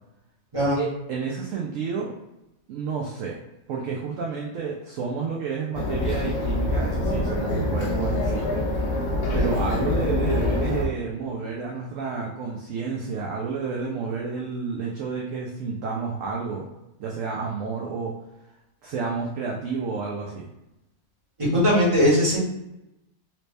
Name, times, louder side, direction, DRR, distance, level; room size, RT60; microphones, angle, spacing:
voice 1, 0.8-2.1 2.7-3.4 3.7-8.5 9.3-16.7 17.0-18.1 18.8-20.5, right 5 dB, 65° right, -1 dB, 0.8 m, -30 dB
sound 1, 5.7-10.9, left 2 dB, 80° left, 0.4 m, -25 dB
voice 2, 21.4-22.4, equal, 20° right, -8 dB, 1.4 m, -19 dB
3.0 x 2.8 x 3.2 m, 0.91 s
omnidirectional pair, 1.6 m